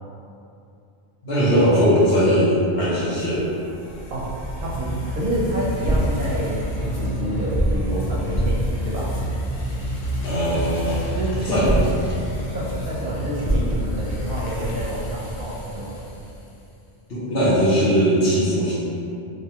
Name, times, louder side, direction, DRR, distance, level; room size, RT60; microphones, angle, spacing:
voice 1, 1.2-3.4 10.2-11.0 11.5-11.7 17.1-18.7, equal, 70° left, -9 dB, 1.0 m, -19 dB
sound 1, 3.1-16.5, equal, 50° left, 0.5 m, -27 dB
voice 2, 4.1-9.1 11.1-11.8 12.5-16.0, right 1 dB, 65° right, -5 dB, 0.8 m, -28 dB
2.7 x 2.2 x 2.8 m, 2.6 s
omnidirectional pair, 1.0 m